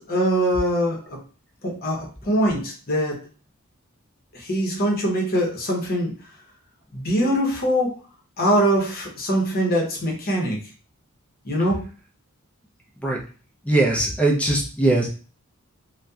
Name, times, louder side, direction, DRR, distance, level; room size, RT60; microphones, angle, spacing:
voice 1, 0.1-1.2 1.6-3.2 4.3-6.1 6.9-8.0 8.4-10.6 11.4-11.8, equal, 45° left, -1 dB, 0.8 m, -23 dB
voice 2, 13.7-15.1, right 2 dB, 5° left, -1 dB, 0.5 m, -20 dB
2.7 x 2.1 x 2.3 m, 0.38 s
head